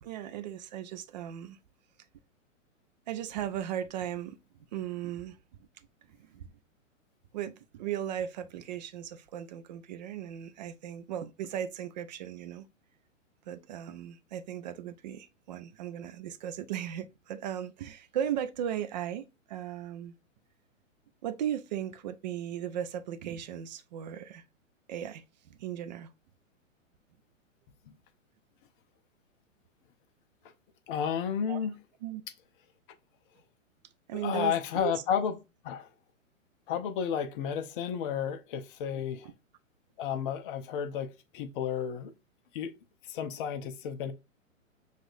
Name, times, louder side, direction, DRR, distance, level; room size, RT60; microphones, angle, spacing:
voice 1, 0.0-1.6 3.1-4.4 4.7-5.7 6.1-6.5 7.3-12.7 13.5-20.1 21.2-24.4 24.9-26.1 31.5-31.7 32.0-32.2 34.1-35.0 38.9-39.3, right 10 dB, 35° right, 0.4 m, -37 dB
voice 2, 30.9-31.8 34.2-35.4 35.6-35.9 36.7-39.3 40.0-42.1 42.5-42.7 43.1-44.1, left 8 dB, 40° left, 0.6 m, -32 dB
6.1 x 2.4 x 2.4 m
hypercardioid pair, 115°, 39 cm